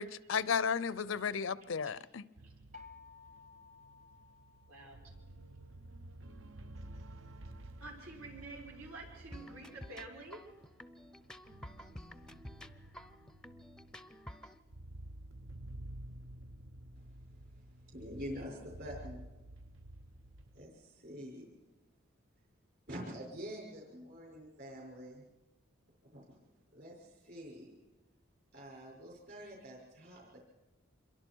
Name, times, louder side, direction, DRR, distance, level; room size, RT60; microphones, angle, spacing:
voice 1, 0.0-2.2, left 6 dB, 65° left, 18 dB, 0.6 m, -34 dB
sound 1, 2.4-20.7, right 1 dB, 65° right, 0.8 m, -52 dB
sound 2, 2.7-5.5, left 5 dB, 30° right, 1.1 m, -57 dB
voice 2, 7.8-10.4 11.4-11.5, right 2 dB, 85° right, -2 dB, 6.1 m, -49 dB
sound 3, 9.3-14.6, left 1 dB, 5° left, 0.6 m, -51 dB
voice 3, 17.9-19.3 20.5-21.5 22.9-25.2 26.1-26.4 26.7-27.7 28.5-30.4, equal, 50° right, -2 dB, 5.9 m, -46 dB
26.5 x 23.0 x 4.6 m, 1.1 s
head